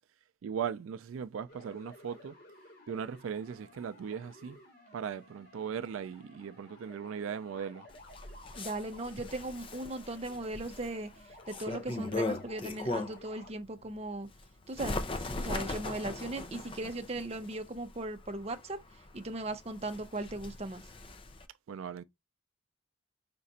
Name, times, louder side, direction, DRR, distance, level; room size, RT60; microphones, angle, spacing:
voice 1, 0.4-2.4 2.9-4.6 4.9-7.9 21.7-22.0, right 7 dB, 85° right, 0.3 m, -38 dB
sound 1, 1.5-13.5, left 2 dB, 50° left, 1.5 m, -55 dB
Bird, 7.9-13.3 13.8-21.5, left 2 dB, 25° left, 0.4 m, -39 dB
voice 2, 8.6-11.1 11.5-14.3 14.7-18.8 19.1-20.8, right 2 dB, 30° right, 0.6 m, -38 dB
5.2 x 2.5 x 4.0 m
head